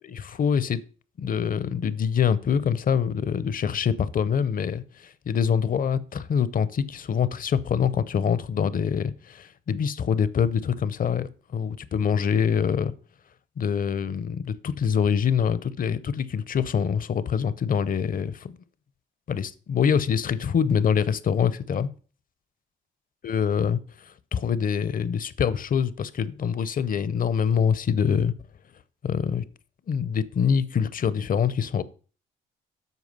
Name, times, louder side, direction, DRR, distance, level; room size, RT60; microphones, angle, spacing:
voice 1, 0.1-0.8 1.2-12.9 13.6-18.6 19.3-21.9 23.2-23.8 24.0-28.3 29.0-29.4 29.9-31.8, left 7 dB, 45° left, 0.6 m, -25 dB
8.2 x 4.8 x 5.4 m
cardioid pair, 90°, 20 cm